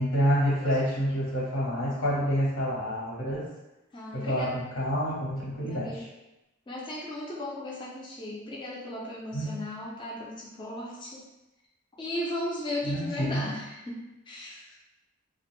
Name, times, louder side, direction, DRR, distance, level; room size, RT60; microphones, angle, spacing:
voice 1, 0.0-3.5 4.1-6.1 9.3-9.5 12.8-13.5, equal, 85° left, -5 dB, 1.0 m, -28 dB
voice 2, 3.9-4.5 4.9-5.0 5.5-6.0 6.7-11.2 12.0-14.6, left 1 dB, 25° left, -4 dB, 0.4 m, -36 dB
2.4 x 2.1 x 3.0 m, 0.97 s
head